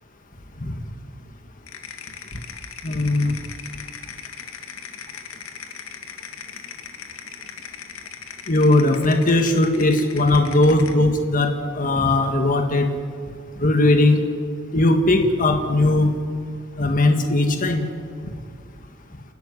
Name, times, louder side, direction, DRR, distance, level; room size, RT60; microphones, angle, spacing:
sound 1, 1.7-11.0, left 7 dB, 85° left, 2.3 m, -38 dB
voice 1, 2.8-3.3 8.5-12.9 13.6-14.2 14.7-16.1 16.8-17.8, left 2 dB, 40° left, 5 dB, 1.8 m, -18 dB
29.5 x 13.0 x 9.7 m, 2.1 s
head